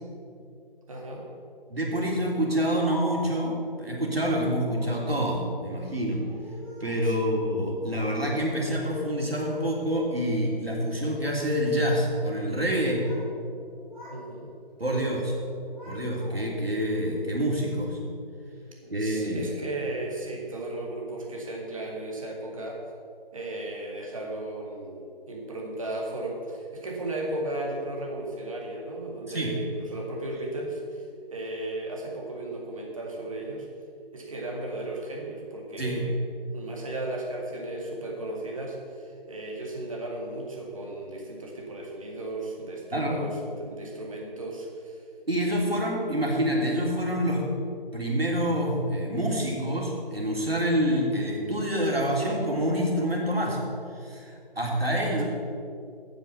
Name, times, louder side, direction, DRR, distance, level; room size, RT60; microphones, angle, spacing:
voice 1, 0.9-1.3 7.0-7.4 14.1-14.5 18.8-22.8 23.3-33.7 34.1-36.2 36.5-45.0 55.0-55.2, right 1 dB, 35° right, -1 dB, 2.1 m, -35 dB
voice 2, 1.7-6.2 6.8-13.0 14.8-15.3 15.9-18.0 18.9-19.4 29.3-29.5 35.8-36.1 42.9-43.2 45.3-47.5 47.9-53.6 54.0-55.2, equal, 85° right, -2 dB, 3.4 m, -27 dB
Speech, 2.4-3.5 4.7-5.1 6.1-7.1 7.8-8.6 8.9-9.7 10.1-10.5 11.1-11.4 12.6-13.3 13.6-14.2 14.5-15.1 15.4-16.6, left 1 dB, ahead, 0.8 m, -44 dB
9.3 x 8.8 x 6.9 m, 2.4 s
figure-of-eight pair, 160°, 29 cm